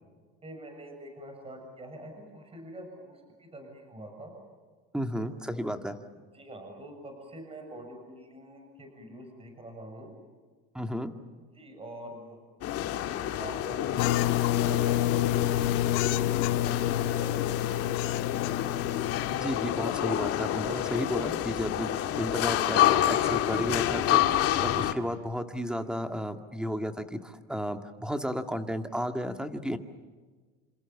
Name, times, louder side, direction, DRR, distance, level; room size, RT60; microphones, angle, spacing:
voice 1, 0.4-4.3 6.3-10.1 11.5-12.4 13.0-17.4 17.6-18.2, right 1 dB, 20° right, 4 dB, 7.0 m, -45 dB
voice 2, 4.9-6.0 10.7-11.1 19.3-29.8, equal, 5° right, 6 dB, 1.9 m, -33 dB
sound 1, 12.6-24.9, left 12 dB, 50° left, 2.0 m, -28 dB
sound 2, 14.0-19.4, left 13 dB, 75° left, 1.5 m, -28 dB
28.0 x 27.5 x 7.2 m, 1.4 s
supercardioid pair, 130°, 31 cm